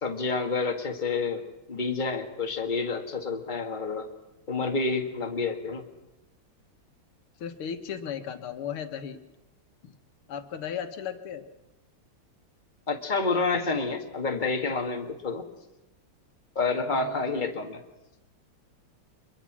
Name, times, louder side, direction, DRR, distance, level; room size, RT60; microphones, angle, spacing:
voice 1, 0.0-1.4 1.7-4.1 4.5-5.8 12.9-15.5 16.6-17.8, left 4 dB, 20° left, 3 dB, 1.9 m, -29 dB
voice 2, 7.4-9.2 9.8-10.0 10.3-11.4 16.9-17.3, left 8 dB, 75° left, 8 dB, 2.2 m, -36 dB
25.5 x 22.0 x 6.2 m, 1.0 s
omnidirectional pair, 2.4 m